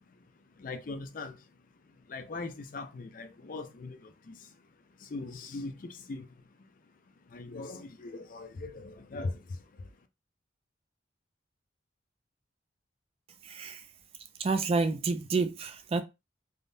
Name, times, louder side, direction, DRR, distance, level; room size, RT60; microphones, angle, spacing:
voice 1, 0.6-1.3 2.1-4.0 4.3-4.4 5.1-6.2 7.3-9.3, left 3 dB, 45° left, 0.4 m, -39 dB
voice 2, 13.4-13.8 14.4-16.0, right 3 dB, 30° right, 0.3 m, -29 dB
3.5 x 2.2 x 2.6 m
head